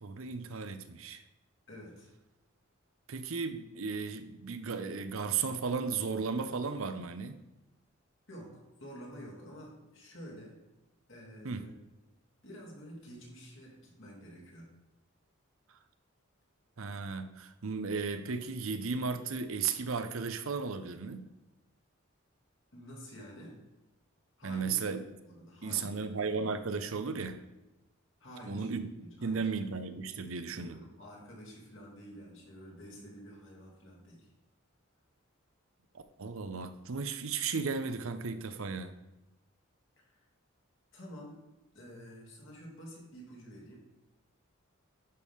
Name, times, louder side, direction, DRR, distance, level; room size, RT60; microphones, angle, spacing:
voice 1, 0.0-1.2 3.1-7.4 11.4-11.6 16.8-21.3 24.4-25.0 25.6-27.4 28.5-30.8 35.9-38.9, right 5 dB, 80° right, 10 dB, 0.7 m, -35 dB
voice 2, 1.7-2.1 8.3-10.6 11.1-11.8 12.4-14.7 22.7-23.6 24.4-24.7 25.2-26.1 28.2-28.7 29.0-29.5 30.5-34.3 40.0-40.3 40.9-41.4 41.7-43.8, equal, 65° left, -3 dB, 2.6 m, -49 dB
11.0 x 5.7 x 3.6 m, 0.98 s
head